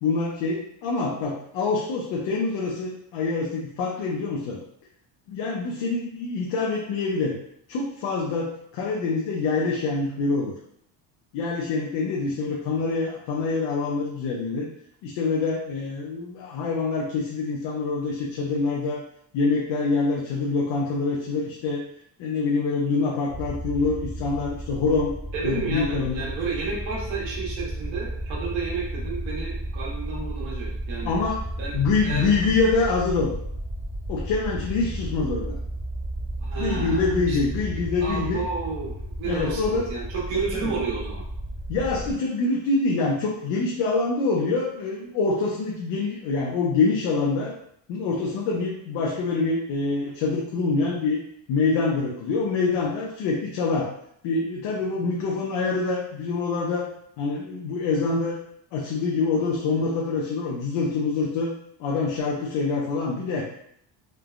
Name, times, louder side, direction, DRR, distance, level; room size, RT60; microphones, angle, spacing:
voice 1, 0.0-4.6 5.3-7.4 7.7-10.5 11.3-14.7 15.0-19.0 19.3-21.8 22.2-25.1 25.4-26.2 31.0-31.4 31.7-33.3 34.1-35.6 36.6-38.4 39.2-39.9 40.5-40.7 41.7-47.6 47.9-51.2 51.5-53.9 54.2-56.9 57.2-58.4 58.7-61.5 61.8-63.4, left 4 dB, 65° left, -2 dB, 0.6 m, -25 dB
sound 1, 23.3-42.1, right 1 dB, 5° right, 0.7 m, -33 dB
voice 2, 25.3-31.2 31.6-32.3 36.4-37.4 38.0-38.9 39.2-41.2, right 4 dB, 75° right, -4 dB, 1.1 m, -31 dB
3.2 x 2.0 x 2.4 m, 0.71 s
cardioid pair, 115°, 46 cm